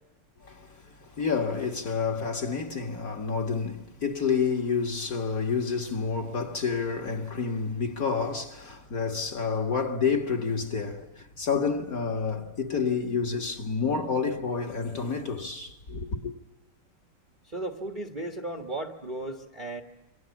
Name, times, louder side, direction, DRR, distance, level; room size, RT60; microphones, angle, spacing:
voice 1, 0.4-16.3, left 5 dB, 40° left, 2.2 m, -29 dB
voice 2, 17.4-19.8, right 2 dB, 25° right, 1.3 m, -35 dB
27.5 x 24.0 x 7.2 m
omnidirectional pair, 2.4 m